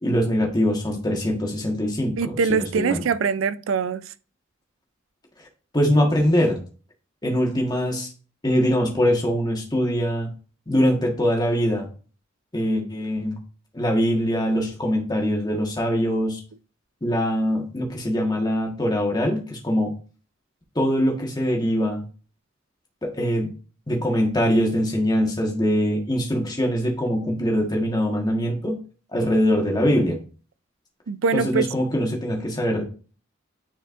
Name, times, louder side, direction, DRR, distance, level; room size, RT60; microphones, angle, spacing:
voice 1, 0.0-3.0 5.7-6.6 7.2-8.1 8.4-10.3 10.7-11.9 12.5-13.4 13.7-16.4 17.0-19.9 20.7-22.0 23.0-23.5 23.9-28.8 29.1-30.2 31.3-32.8, equal, 20° left, 1.4 m, -23 dB
voice 2, 2.2-4.1 31.1-31.7, right 5 dB, 80° right, 0.4 m, -23 dB
9.2 x 4.4 x 2.5 m
head